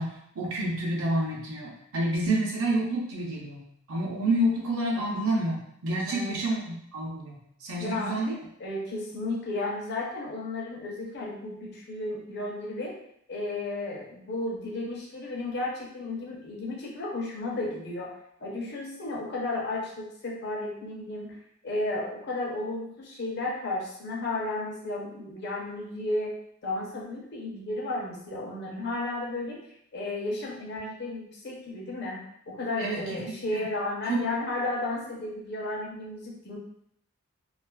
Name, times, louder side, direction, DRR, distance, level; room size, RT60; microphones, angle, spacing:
voice 1, 0.0-3.6 3.9-8.3 32.8-33.6 34.0-34.2, right 1 dB, 65° right, -3 dB, 0.6 m, -29 dB
voice 2, 7.8-13.0 13.3-21.4 21.6-26.4 26.6-29.6 29.9-36.6, left 2 dB, 50° left, -2 dB, 0.6 m, -33 dB
2.4 x 2.3 x 2.2 m, 0.72 s
head